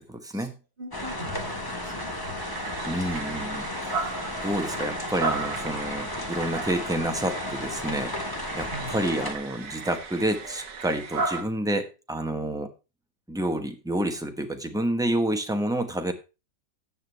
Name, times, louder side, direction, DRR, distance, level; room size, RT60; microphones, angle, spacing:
voice 1, 0.1-0.5 2.8-12.7 13.3-16.1, right 1 dB, 5° right, 5 dB, 0.9 m, -29 dB
voice 2, 0.8-2.6 8.7-9.1, right 1 dB, 30° right, 0 dB, 2.6 m, -41 dB
sound 1, 0.9-9.3, left 1 dB, 15° left, 1.2 m, -34 dB
sound 2, 2.4-11.4, right 4 dB, 55° right, 1.7 m, -35 dB
14.0 x 7.9 x 3.3 m, 0.29 s
omnidirectional pair, 1.9 m